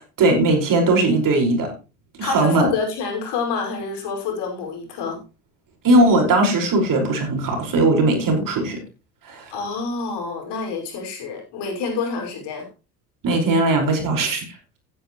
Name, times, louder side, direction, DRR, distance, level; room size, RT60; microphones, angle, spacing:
voice 1, 0.0-1.7 2.2-2.7 5.8-8.8 9.2-9.5 13.2-14.4, right 2 dB, 40° right, 3 dB, 5.3 m, -19 dB
voice 2, 2.2-5.2 9.5-12.7, left 5 dB, 55° left, 1 dB, 5.7 m, -27 dB
15.0 x 10.0 x 3.1 m, 0.31 s
hypercardioid pair, 75°, 49 cm